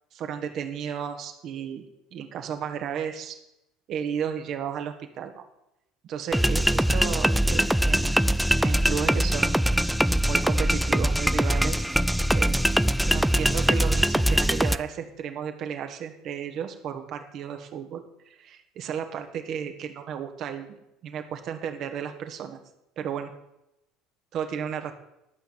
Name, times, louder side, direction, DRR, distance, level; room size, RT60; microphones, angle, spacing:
voice 1, 0.1-1.8 2.1-3.4 3.9-5.4 6.0-8.1 8.6-9.7 10.2-12.0 12.3-12.6 13.0-22.6 23.0-23.3 24.3-24.9, right 8 dB, 55° right, 6 dB, 1.6 m, -33 dB
sound 1, 6.3-14.8, equal, ahead, 0.4 m, -22 dB
12.5 x 5.9 x 7.3 m, 0.86 s
hypercardioid pair, 75°, 0 cm